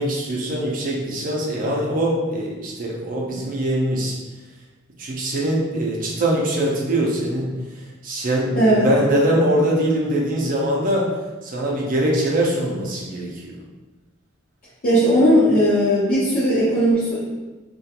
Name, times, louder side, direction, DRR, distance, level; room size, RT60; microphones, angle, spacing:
voice 1, 0.0-4.1 5.0-7.5 8.0-11.1 11.4-13.5, right 1 dB, 40° right, -3 dB, 0.4 m, -22 dB
voice 2, 8.5-8.9 14.8-17.2, equal, 45° left, -10 dB, 0.6 m, -17 dB
2.4 x 2.2 x 2.7 m, 1.2 s
head